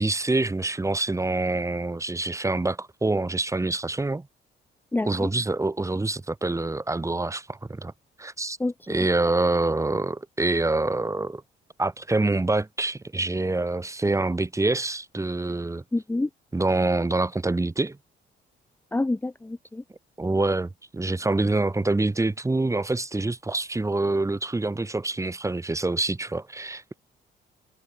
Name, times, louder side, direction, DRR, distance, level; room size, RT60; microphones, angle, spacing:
voice 1, 0.0-4.3 5.0-7.9 8.2-8.6 8.9-11.4 11.8-15.8 16.5-18.0 20.2-26.9, right 2 dB, 15° right, 1.4 m, -26 dB
voice 2, 4.9-5.3 8.6-8.7 15.9-16.3 18.9-19.8, left 2 dB, 10° left, 0.7 m, -27 dB
cardioid pair, 90°, 20 cm